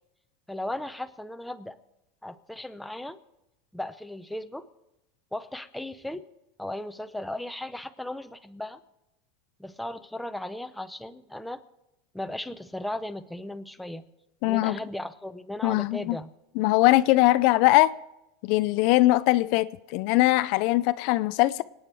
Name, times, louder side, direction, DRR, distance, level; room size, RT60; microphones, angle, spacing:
voice 1, 0.5-1.8 2.2-3.2 3.7-4.7 5.3-6.3 6.6-8.8 9.6-11.6 12.1-14.0 14.4-16.3, left 1 dB, 5° left, 0.6 m, -36 dB
voice 2, 14.4-14.8 15.6-16.2 16.6-17.9 18.4-21.6, left 18 dB, 55° left, 0.4 m, -21 dB
26.0 x 9.3 x 4.7 m
supercardioid pair, 145°, 0 cm